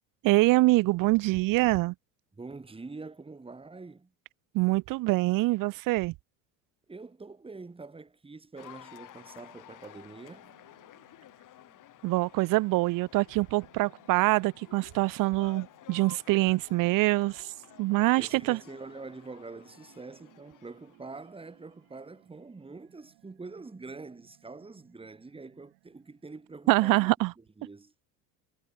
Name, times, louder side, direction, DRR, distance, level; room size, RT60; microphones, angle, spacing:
voice 1, 0.2-1.9 4.5-6.1 12.0-17.5 17.8-18.6 26.7-27.3, right 21 dB, 55° right, 0.6 m, -25 dB
voice 2, 2.3-4.1 6.9-10.5 18.2-27.1 27.4-27.9, right 3 dB, 15° right, 2.1 m, -45 dB
Cheering / Applause, 8.6-21.9, left 13 dB, 50° left, 1.9 m, -53 dB
sound 1, 9.1-27.0, right 30 dB, 70° right, 7.0 m, -64 dB
supercardioid pair, 90°, 40 cm